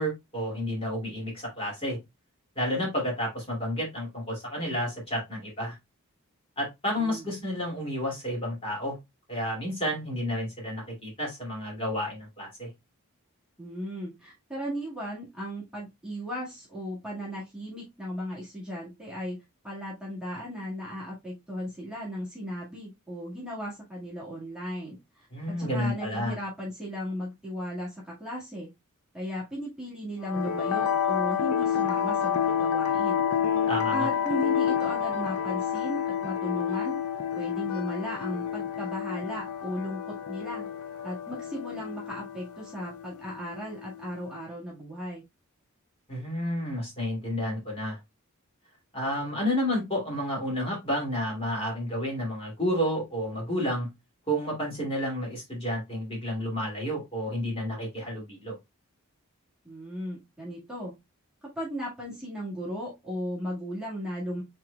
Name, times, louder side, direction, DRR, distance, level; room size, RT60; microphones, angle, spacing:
voice 1, 0.0-2.0 2.6-5.8 6.6-9.0 9.3-12.7 25.3-26.3 33.7-34.1 46.1-48.0 48.9-53.9 54.3-58.6, equal, 25° left, -1 dB, 2.5 m, -30 dB
voice 2, 13.6-19.4 19.6-25.3 25.6-28.7 29.1-33.2 33.9-37.0 37.3-40.0 40.3-40.7 41.0-45.2 59.6-60.9 61.4-64.4, equal, 5° right, -6 dB, 1.8 m, -36 dB
sound 1, 30.2-44.3, left 8 dB, 80° left, 0.5 m, -29 dB
5.9 x 3.8 x 2.3 m, 0.21 s
head